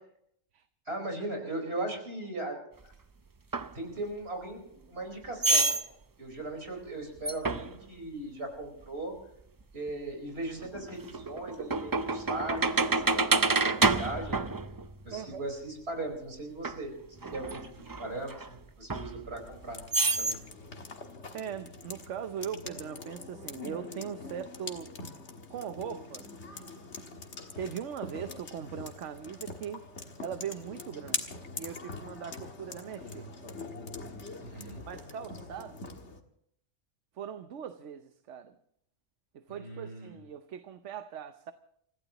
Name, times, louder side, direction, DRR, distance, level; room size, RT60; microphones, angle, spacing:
voice 1, 0.9-2.6 3.7-4.6 4.9-9.1 9.7-14.5 15.0-16.9 17.3-19.8 20.2-20.4 34.4-34.8 39.5-40.2, right 2 dB, 60° right, 3 dB, 4.9 m, -38 dB
sound 1, 3.5-3.7 5.4-5.9 7.2-7.8 9.9-10.0 10.6-15.2 16.6-16.8 17.2-18.5 18.9-19.5 19.9-20.4, right 3 dB, 30° right, 0.4 m, -28 dB
voice 2, 15.1-15.4 21.3-24.9 25.5-26.3 27.6-29.8 30.2-33.3 34.9-35.8 37.2-38.5 39.3-41.5, right 8 dB, 80° right, 9 dB, 1.1 m, -40 dB
sound 2, 19.4-36.2, left 3 dB, 70° left, 1.9 m, -43 dB
30.0 x 15.5 x 3.0 m, 0.68 s
omnidirectional pair, 1.2 m